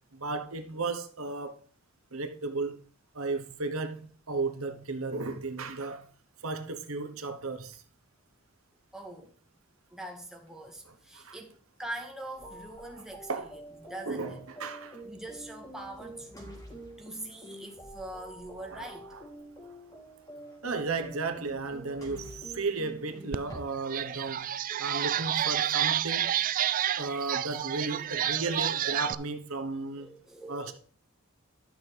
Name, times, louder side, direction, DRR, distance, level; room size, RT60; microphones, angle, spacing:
voice 1, 0.1-1.6 2.1-2.8 3.1-6.1 6.4-7.8 11.1-11.4 13.3-13.5 14.1-15.0 18.7-18.9 19.7-19.8 20.6-24.5 24.8-26.3 27.0-30.1 30.5-30.7, right 3 dB, 80° right, 1.1 m, -34 dB
voice 2, 8.9-9.3 9.9-13.3 13.8-14.4 15.0-16.7 17.0-19.1 29.9-30.7, right 1 dB, ahead, 1.6 m, -43 dB
sound 1, 12.4-23.6, right 1 dB, 15° left, 3.0 m, -47 dB
sound 2, 23.3-23.4 23.8-29.1, right 11 dB, 40° right, 0.3 m, -29 dB
11.5 x 6.4 x 3.4 m
head